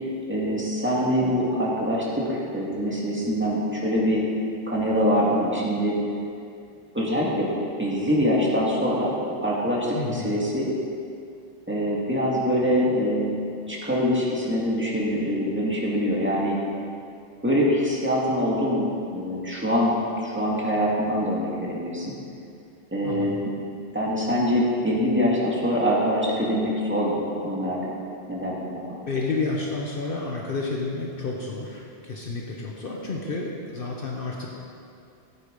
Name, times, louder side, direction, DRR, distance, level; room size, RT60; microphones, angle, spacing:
voice 1, 0.3-4.2 4.7-5.9 6.9-7.5 7.8-9.1 9.4-10.7 11.7-13.4 13.7-16.6 17.4-22.1 22.9-23.5 23.9-28.0 28.3-29.0, equal, 10° right, -5 dB, 2.0 m, -24 dB
voice 2, 9.9-10.3 23.0-23.3 29.1-34.5, left 3 dB, 55° left, -1 dB, 1.2 m, -30 dB
12.5 x 8.5 x 5.2 m, 2.5 s
omnidirectional pair, 1.1 m